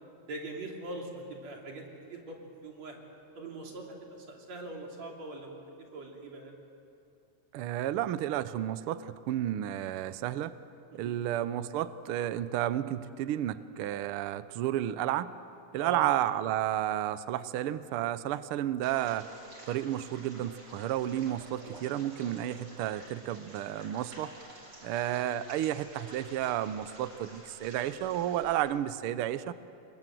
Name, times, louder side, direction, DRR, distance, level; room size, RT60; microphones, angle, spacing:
voice 1, 0.2-3.0 3.3-6.5 10.9-11.2 15.7-16.0, right 2 dB, 60° right, 0 dB, 4.2 m, -42 dB
voice 2, 7.5-10.5 10.9-15.3 15.7-19.3 19.7-24.3 24.8-29.5, right 12 dB, 85° right, 14 dB, 1.2 m, -32 dB
sound 1, 18.8-28.6, right 1 dB, 35° right, 4.5 m, -50 dB
28.0 x 22.0 x 7.7 m, 2.6 s
omnidirectional pair, 3.4 m